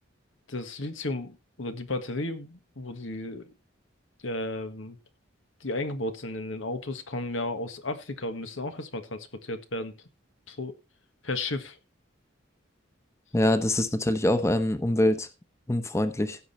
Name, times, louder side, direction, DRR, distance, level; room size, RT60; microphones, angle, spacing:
voice 1, 0.5-3.5 4.2-5.0 5.6-9.9 10.5-10.8 11.2-11.8, left 2 dB, 90° left, 1.6 m, -34 dB
voice 2, 13.3-15.3 15.7-16.4, left 1 dB, 15° left, 0.9 m, -24 dB
16.0 x 6.2 x 4.3 m
head